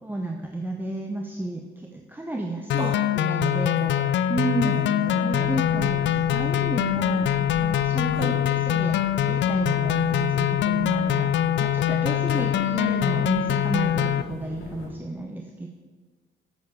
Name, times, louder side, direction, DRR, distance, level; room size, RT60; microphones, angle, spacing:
voice 1, 0.0-3.8 4.3-4.8 5.2-7.3 7.6-8.4 8.6-9.0 9.3-11.3 11.6-15.7, right 2 dB, 10° right, 1 dB, 0.8 m, -31 dB
sound 1, 2.7-14.2, left 11 dB, 65° left, 0.4 m, -23 dB
voice 2, 3.4-4.1 4.6-5.5 8.1-8.3 12.3-12.5, equal, 25° right, -1 dB, 2.3 m, -35 dB
sound 2, 5.3-14.9, left 4 dB, 80° left, 1.6 m, -40 dB
8.3 x 6.6 x 5.2 m, 1.4 s
cardioid pair, 90°, 20 cm